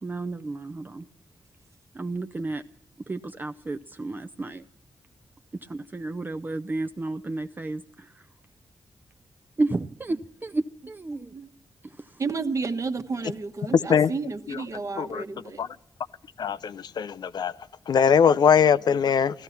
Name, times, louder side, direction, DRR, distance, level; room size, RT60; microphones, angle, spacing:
voice 1, 0.0-1.1 1.9-2.6 3.1-4.7 5.6-8.3 9.6-11.4 11.8-12.2, right 2 dB, 25° right, 0.5 m, -32 dB
voice 2, 12.2-15.6, right 4 dB, 45° right, 1.1 m, -31 dB
voice 3, 16.4-17.5 17.9-19.4, left 7 dB, 65° left, 0.5 m, -21 dB
15.5 x 13.5 x 5.8 m
cardioid pair, 95°, 8 cm